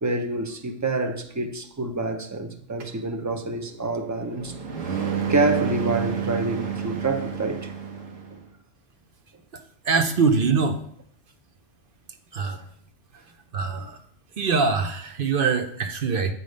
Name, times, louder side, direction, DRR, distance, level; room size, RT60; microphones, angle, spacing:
voice 1, 0.0-7.7 8.3-8.4, right 2 dB, 25° right, 0.4 m, -27 dB
sound 1, 2.8-8.4, right 7 dB, 85° right, 1.5 m, -30 dB
voice 2, 9.5-10.8 12.3-12.6 13.5-14.0 14.4-16.3, right 4 dB, 50° right, 0.8 m, -23 dB
8.2 x 5.1 x 5.2 m
omnidirectional pair, 1.3 m